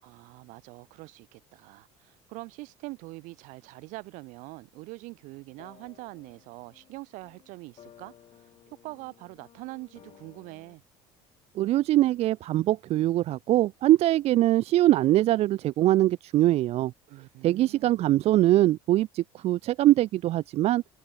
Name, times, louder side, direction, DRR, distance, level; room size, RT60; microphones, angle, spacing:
voice 1, 0.0-10.8 17.1-17.9, right 23 dB, 75° right, 2.2 m, -44 dB
sound 1, 5.3-5.4 5.6-10.8, left 10 dB, 50° left, 4.6 m, -56 dB
voice 2, 11.6-16.9 17.4-20.8, right 15 dB, 55° right, 0.4 m, -22 dB
supercardioid pair, 90°, 13 cm